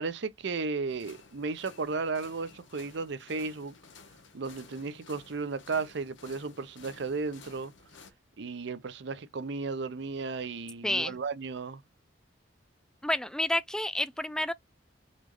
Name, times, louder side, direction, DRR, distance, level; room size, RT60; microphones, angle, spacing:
voice 1, 0.0-3.8 4.3-7.7 8.4-11.8, right 4 dB, 65° right, 0.6 m, -34 dB
sound 1, 0.9-8.1, left 5 dB, 90° left, 1.0 m, -54 dB
voice 2, 13.0-14.5, left 1 dB, 5° left, 0.3 m, -29 dB
4.2 x 3.0 x 3.0 m
head